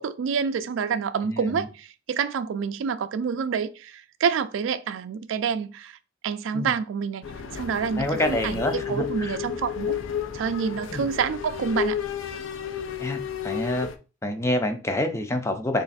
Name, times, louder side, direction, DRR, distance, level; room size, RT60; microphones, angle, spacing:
voice 1, 0.0-6.0 6.2-7.3 7.5-10.0 10.3-12.0, right 6 dB, 75° right, 0.3 m, -28 dB
voice 2, 1.2-1.7 6.5-6.7 8.0-9.4 10.9-11.1 13.0-13.9 14.2-15.8, left 1 dB, 15° left, 0.4 m, -27 dB
sound 1, 7.2-14.0, left 8 dB, 80° left, 0.4 m, -32 dB
3.2 x 2.5 x 4.0 m
head